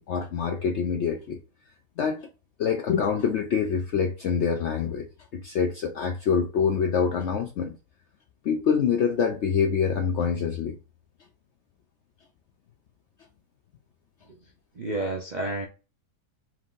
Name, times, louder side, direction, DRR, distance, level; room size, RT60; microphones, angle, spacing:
voice 1, 0.0-1.4 2.0-2.3 2.6-5.1 5.3-7.8 8.4-10.8, left 6 dB, 75° left, 0.6 m, -25 dB
voice 2, 14.7-15.7, right 2 dB, 65° right, 0.4 m, -30 dB
4.5 x 2.5 x 3.7 m
omnidirectional pair, 1.7 m